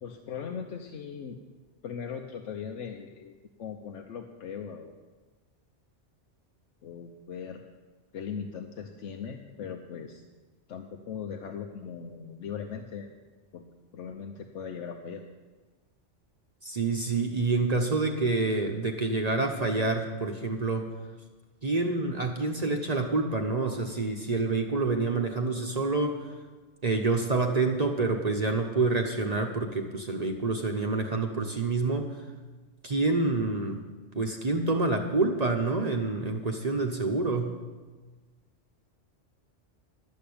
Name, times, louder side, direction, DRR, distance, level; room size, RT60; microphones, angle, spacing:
voice 1, 0.0-1.4 1.8-3.3 3.6-5.0 6.8-7.6 8.1-10.2 10.7-13.1 13.5-13.6 13.9-15.2, left 7 dB, 85° left, 3 dB, 1.1 m, -39 dB
voice 2, 16.6-20.9 21.6-26.2 26.8-32.1 32.8-33.8 34.2-37.6, right 3 dB, 35° right, 3 dB, 0.9 m, -27 dB
11.5 x 6.5 x 8.6 m, 1.3 s
omnidirectional pair, 1.2 m